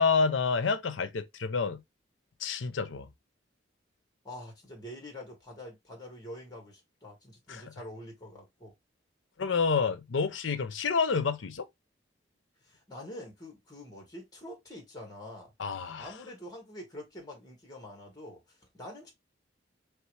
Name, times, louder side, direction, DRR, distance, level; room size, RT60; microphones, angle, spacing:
voice 1, 0.0-1.8 2.4-3.1 7.5-7.6 9.4-11.7 15.6-16.1, left 5 dB, 85° left, 0.6 m, -28 dB
voice 2, 4.2-8.7 12.6-15.5 16.0-19.1, left 1 dB, 20° left, 1.8 m, -46 dB
4.5 x 3.3 x 3.2 m
head